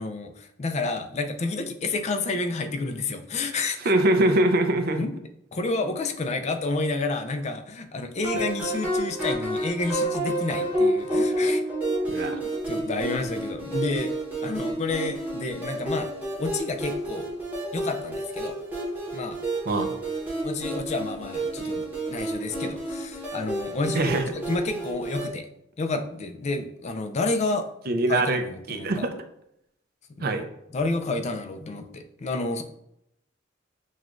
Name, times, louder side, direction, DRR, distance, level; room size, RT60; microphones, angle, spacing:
voice 1, 0.0-3.8 5.0-5.1 5.5-11.6 12.2-14.1 14.4-16.1 16.4-17.3 17.7-18.5 19.1-19.4 20.4-24.1 24.5-25.5 25.8-27.7 28.1-29.1 30.2-30.3 30.7-32.6, left 3 dB, 35° left, 6 dB, 0.4 m, -30 dB
voice 2, 3.8-5.0 12.1-12.4 19.7-19.9 23.9-24.2 27.9-28.4 28.7-29.1 30.2-30.4, right 2 dB, 50° right, 6 dB, 0.5 m, -23 dB
sound 1, 8.2-25.3, right 1 dB, 10° right, 1.0 m, -30 dB
6.2 x 2.3 x 2.5 m, 0.77 s
head